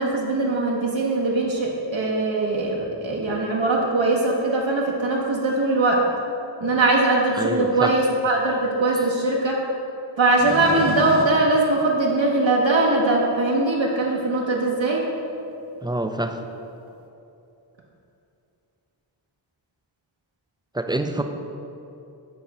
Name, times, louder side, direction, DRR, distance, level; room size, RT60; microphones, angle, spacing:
voice 1, 0.0-6.0 6.6-9.6 10.2-15.0, right 2 dB, 70° right, -3 dB, 1.0 m, -21 dB
voice 2, 7.3-7.9 9.0-9.1 15.8-16.4 20.7-21.2, right 1 dB, 10° right, 6 dB, 0.4 m, -26 dB
sound 1, 10.4-12.6 13.4-13.5 14.9-15.0 16.8-16.9, right 2 dB, 30° right, 0.8 m, -32 dB
8.3 x 3.1 x 5.8 m, 2.7 s
wide cardioid pair, 40°, 47 cm